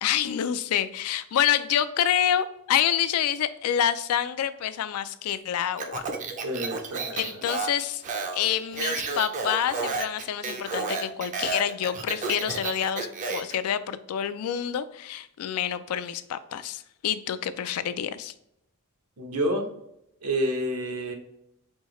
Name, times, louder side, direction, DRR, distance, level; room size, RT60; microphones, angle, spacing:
voice 1, 0.0-6.0 7.1-8.0 8.3-18.3, left 9 dB, 75° left, 13 dB, 0.3 m, -27 dB
Speech, 5.8-13.6, right 4 dB, 35° right, 0.4 m, -32 dB
voice 2, 6.4-7.2 19.2-19.7 20.2-21.1, equal, 85° right, 3 dB, 0.9 m, -28 dB
4.5 x 2.7 x 3.0 m, 0.79 s
head